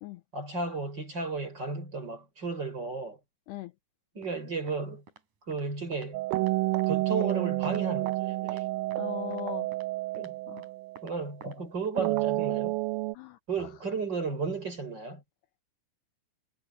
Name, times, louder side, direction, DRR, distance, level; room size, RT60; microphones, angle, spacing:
voice 1, 0.3-3.2 4.1-5.0 5.5-6.2 6.9-8.7 10.2-10.3 11.0-12.8 13.5-15.2, right 4 dB, 20° right, 6.0 m, -34 dB
sound 1, 4.2-4.4 4.7-4.8 5.1-5.2 5.5-5.6 5.9-6.1 6.3-6.9 7.2-7.4 7.6-8.2 8.5-8.6 8.9-9.0 9.3-9.4 9.7-9.9 10.1-10.3 10.6-10.7 11.0-11.2 11.4-11.6 11.8-11.9, right 4 dB, 40° right, 5.0 m, -52 dB
sound 2, 6.1-11.3 12.0-13.2, right 19 dB, 90° right, 3.4 m, -30 dB
voice 2, 9.0-9.7 10.5-10.7 13.1-13.4, left 15 dB, 80° left, 2.5 m, -39 dB
omnidirectional pair, 5.7 m